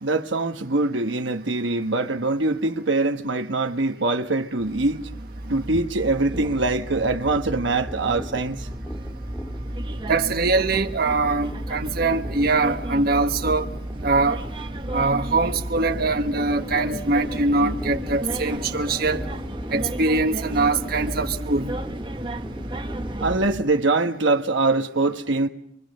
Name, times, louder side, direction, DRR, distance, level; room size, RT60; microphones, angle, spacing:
voice 1, 0.0-5.0 5.5-8.7 23.2-25.5, right 2 dB, 70° right, 1.2 m, -23 dB
sound 1, 4.6-23.4, right 1 dB, 25° right, 0.9 m, -34 dB
sound 2, 6.9-23.6, equal, 5° left, 0.9 m, -37 dB
voice 2, 10.1-13.7 14.0-14.4 14.9-19.2 19.7-21.7, right 3 dB, 55° right, 1.3 m, -22 dB
26.5 x 23.5 x 6.7 m
head